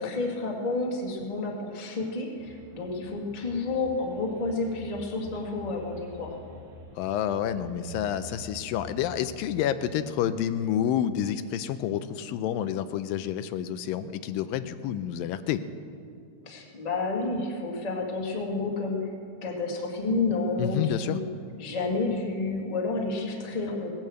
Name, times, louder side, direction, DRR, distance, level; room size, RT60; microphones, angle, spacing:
voice 1, 0.0-6.4 16.4-19.1 19.4-21.2 21.6-23.9, left 3 dB, 20° left, -1 dB, 0.9 m, -30 dB
sound 1, 2.4-9.4, right 1 dB, 45° right, 2.2 m, -47 dB
voice 2, 7.0-15.6 20.6-21.2, left 10 dB, 85° left, 11 dB, 2.3 m, -29 dB
18.5 x 8.9 x 7.8 m, 2.5 s
omnidirectional pair, 4.0 m